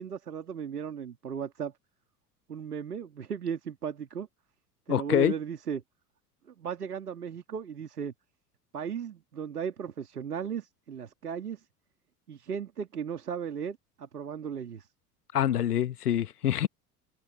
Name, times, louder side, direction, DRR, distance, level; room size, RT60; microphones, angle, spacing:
voice 1, 0.0-1.7 2.5-4.3 4.9-5.8 6.5-8.1 8.7-11.6 12.3-14.9, right 7 dB, 75° right, 3.2 m, -36 dB
voice 2, 4.9-5.3 15.3-16.7, left 11 dB, 75° left, 1.2 m, -25 dB
figure-of-eight pair, 75°, 47 cm